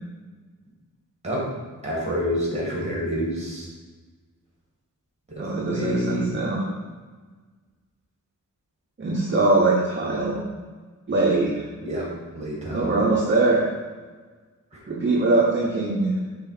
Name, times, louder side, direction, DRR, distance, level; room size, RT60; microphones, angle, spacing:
voice 1, 1.8-3.7 5.3-6.3 11.8-13.0 14.7-14.8, equal, 20° right, -4 dB, 2.0 m, -28 dB
voice 2, 5.4-6.7 9.0-10.4 11.1-11.6 12.7-13.6 14.9-16.1, right 2 dB, 35° right, -3 dB, 0.8 m, -22 dB
6.1 x 3.5 x 5.9 m, 1.4 s
wide cardioid pair, 180°, 34 cm